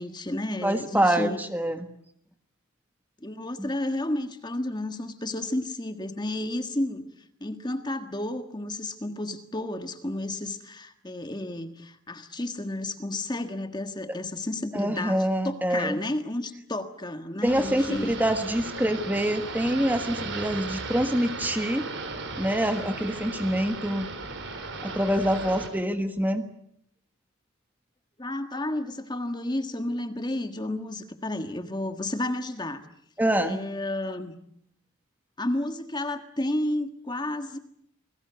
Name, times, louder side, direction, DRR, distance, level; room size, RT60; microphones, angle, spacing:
voice 1, 0.0-1.4 3.2-7.1 7.4-18.1 28.2-32.8 33.4-34.4 35.4-37.6, left 1 dB, 20° left, 8 dB, 1.5 m, -31 dB
voice 2, 0.6-1.9 3.6-3.7 14.1-14.2 14.7-16.0 17.4-21.9 22.4-24.1 24.8-26.5 33.2-33.6, right 1 dB, 10° right, 7 dB, 1.4 m, -26 dB
sound 1, 17.5-25.7, right 3 dB, 55° right, 4.2 m, -36 dB
29.0 x 20.0 x 8.1 m, 0.70 s
head